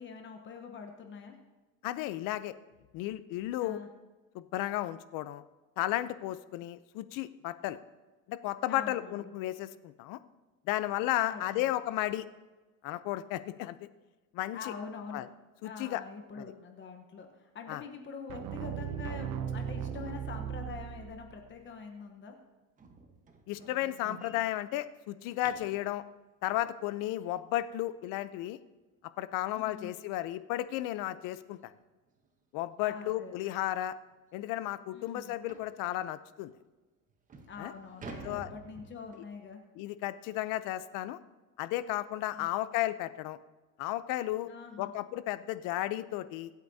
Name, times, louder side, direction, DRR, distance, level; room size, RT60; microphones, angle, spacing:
voice 1, 0.0-1.4 3.6-3.9 8.7-9.2 11.2-11.7 14.5-15.3 15.6-22.4 29.5-29.9 32.8-33.5 34.9-35.3 37.5-39.6 42.3-42.5 44.5-44.9, left 5 dB, 30° left, 4 dB, 1.1 m, -45 dB
voice 2, 1.8-2.5 2.9-3.8 4.3-5.4 5.8-7.8 8.3-10.2 10.7-12.3 12.8-13.9 14.3-14.7 15.1-15.3 15.6-16.0 16.4-16.5 17.7-17.8 23.5-26.0 26.4-28.6 29.2-31.7 32.5-34.0 34.3-36.5 37.6-37.7 38.2-38.5 39.1-39.2 39.8-41.2 41.6-43.4 43.8-44.5 44.8-46.5, left 15 dB, 60° left, 14 dB, 0.7 m, -34 dB
sound 1, 18.3-21.4, right 8 dB, 55° right, 0.8 m, -37 dB
sound 2, 22.8-25.9 28.7-28.8 29.3-29.5 29.8-29.9 30.4-30.5 31.6-31.7 32.1-32.3 32.9-33.0 33.4-33.5 34.0-34.1 35.5-35.8 36.5-36.6 37.1-39.4, right 3 dB, 20° right, 1.1 m, -50 dB
24.5 x 8.3 x 2.8 m, 1.2 s
cardioid pair, 155°, 38 cm